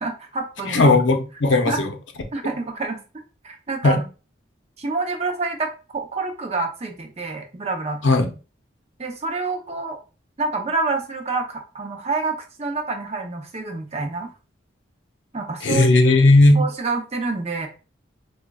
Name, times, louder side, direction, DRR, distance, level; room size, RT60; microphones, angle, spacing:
voice 1, 0.0-1.0 1.7-1.8 2.3-3.0 3.4-4.0 4.8-8.0 9.0-10.0 10.4-14.3 15.3-16.1 16.5-17.7, right 3 dB, 35° right, 0.6 m, -27 dB
voice 2, 0.7-1.9 3.8-4.0 8.0-8.3 15.6-16.6, left 2 dB, 75° left, 0.6 m, -16 dB
4.9 x 2.3 x 2.2 m
head